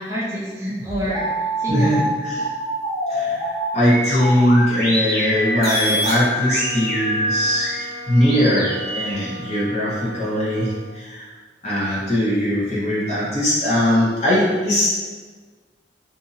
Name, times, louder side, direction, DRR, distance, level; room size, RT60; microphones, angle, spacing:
voice 1, 0.0-2.0, equal, 15° right, -6 dB, 0.4 m, -28 dB
sound 1, 0.7-9.1, equal, 60° left, 0.7 m, -25 dB
voice 2, 1.7-2.5 3.1-11.3 11.6-14.9, equal, 40° left, -8 dB, 1.0 m, -20 dB
sound 2, 5.3-10.9, equal, 45° right, 0.7 m, -38 dB
2.7 x 2.6 x 2.6 m, 1.4 s
head